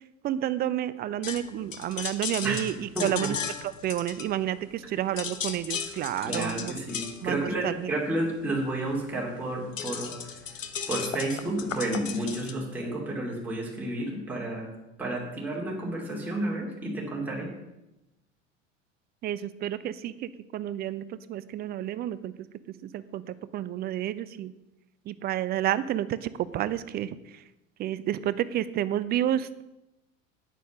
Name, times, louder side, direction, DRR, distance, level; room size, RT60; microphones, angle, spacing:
voice 1, 0.2-3.4 3.8-6.7 7.2-7.9 19.2-22.5 22.8-23.2 23.5-24.5 25.1-27.2 27.8-29.6, right 12 dB, 25° right, 15 dB, 0.5 m, -30 dB
sound 1, 1.2-4.8 5.1-12.5, left 7 dB, 75° left, 1.0 m, -36 dB
voice 2, 2.9-3.3 6.2-10.1 10.9-14.7 15.0-17.5, right 1 dB, 5° right, -4 dB, 2.8 m, -31 dB
9.2 x 9.2 x 6.3 m, 0.94 s
figure-of-eight pair, 80°, 39 cm